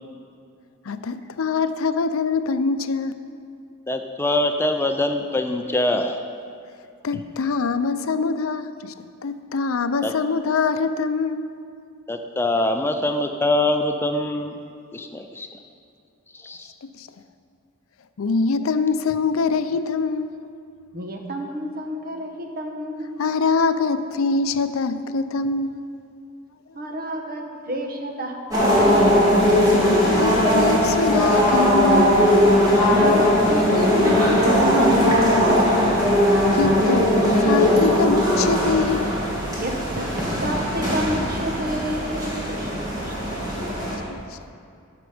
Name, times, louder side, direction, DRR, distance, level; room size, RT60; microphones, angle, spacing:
voice 1, 0.9-3.2 7.0-11.6 16.8-17.1 18.2-20.5 23.2-25.9 29.8-32.2 36.5-39.2 44.1-44.4, left 4 dB, 90° left, 11 dB, 0.5 m, -24 dB
voice 2, 3.9-6.2 10.0-10.1 12.1-14.6 14.9-15.5 16.3-16.7, left 1 dB, 10° left, 5 dB, 0.4 m, -23 dB
voice 3, 20.9-23.2 26.7-29.2 32.8-35.0 39.6-43.1, right 1 dB, 45° right, 2 dB, 1.1 m, -29 dB
sound 1, 28.5-43.9, left 1 dB, 20° right, 2.1 m, -19 dB
14.0 x 6.0 x 5.0 m, 2.4 s
head